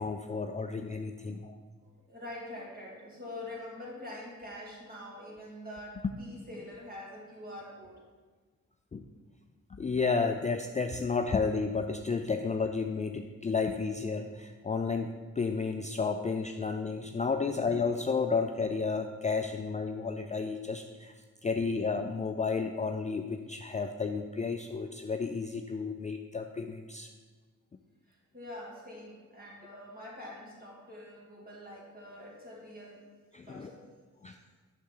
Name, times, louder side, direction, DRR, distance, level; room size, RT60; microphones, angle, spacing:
voice 1, 0.0-1.6 6.0-6.1 8.9-9.0 9.7-21.1 21.4-27.1 33.3-33.7 34.2-34.4, left 4 dB, 25° left, 5 dB, 0.4 m, -32 dB
voice 2, 1.8-8.0 21.4-21.5 28.1-33.0 33.4-33.9, left 1 dB, 30° right, -4 dB, 2.5 m, -45 dB
7.0 x 6.5 x 3.9 m, 1.4 s
cardioid pair, 85°, 31 cm